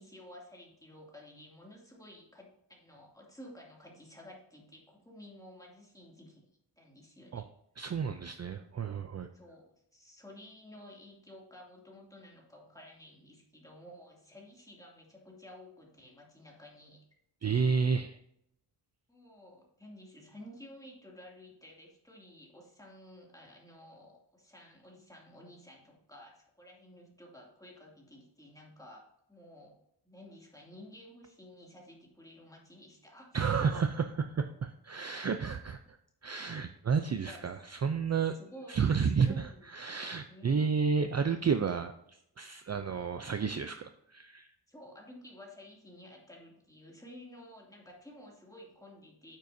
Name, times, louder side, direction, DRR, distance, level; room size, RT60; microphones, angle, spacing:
voice 1, 0.0-6.5 6.8-7.5 9.3-17.0 19.1-29.7 30.0-33.6 37.0-37.4 38.3-38.8 39.1-39.7 40.3-40.8 42.8-43.1 44.7-49.4, left 1 dB, 10° left, -2 dB, 2.5 m, -53 dB
voice 2, 7.8-9.3 17.4-18.2 33.3-36.0 36.2-38.3 38.7-44.5, right 6 dB, 40° right, 8 dB, 0.5 m, -31 dB
9.3 x 7.5 x 2.7 m, 0.76 s
wide cardioid pair, 120°, 42 cm